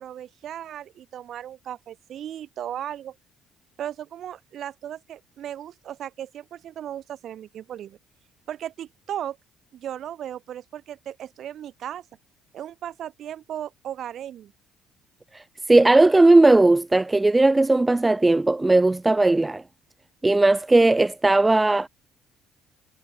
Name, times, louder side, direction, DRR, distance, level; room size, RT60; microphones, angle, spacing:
voice 1, 0.0-3.2 3.8-8.0 8.5-9.4 9.7-12.0 12.5-14.5, right 10 dB, 60° right, 6.0 m, -36 dB
voice 2, 15.7-19.6 20.2-21.9, right 2 dB, 15° right, 0.4 m, -17 dB
hypercardioid pair, 60°, 0 cm